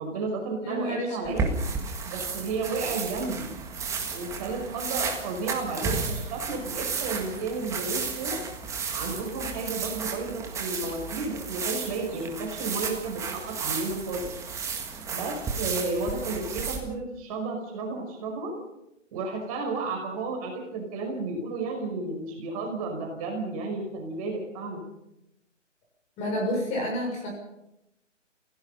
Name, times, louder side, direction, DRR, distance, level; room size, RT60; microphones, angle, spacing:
voice 1, 0.0-1.5 2.1-3.5 4.1-8.4 8.9-14.3 15.1-18.5 19.1-24.8, right 3 dB, 30° right, 1 dB, 5.5 m, -32 dB
voice 2, 0.6-1.3 26.2-27.3, left 1 dB, 20° left, 0 dB, 6.6 m, -29 dB
sound 1, 1.2-16.8, right 5 dB, 10° right, 1.7 m, -33 dB
28.0 x 17.0 x 5.5 m, 0.86 s
figure-of-eight pair, 145°, 37 cm